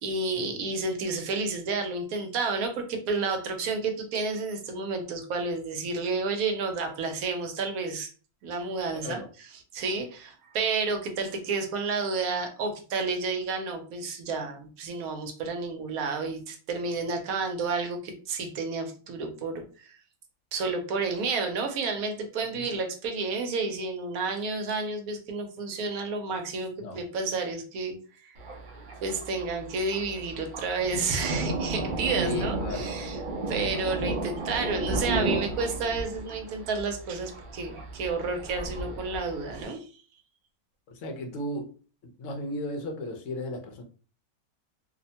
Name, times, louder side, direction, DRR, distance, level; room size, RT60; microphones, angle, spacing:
voice 1, 0.0-8.1 8.4-9.2 9.7-20.0 20.5-28.4 29.0-33.2 33.5-39.9, right 4 dB, 75° right, 5 dB, 1.1 m, -31 dB
voice 2, 8.9-9.3 22.5-22.7 26.8-27.0 32.2-33.0 40.9-41.8 42.0-43.8, left 1 dB, 65° left, 5 dB, 0.9 m, -35 dB
Thunder, 28.4-39.6, right 2 dB, 55° right, 0.5 m, -33 dB
2.8 x 2.1 x 2.7 m, 0.38 s
omnidirectional pair, 1.6 m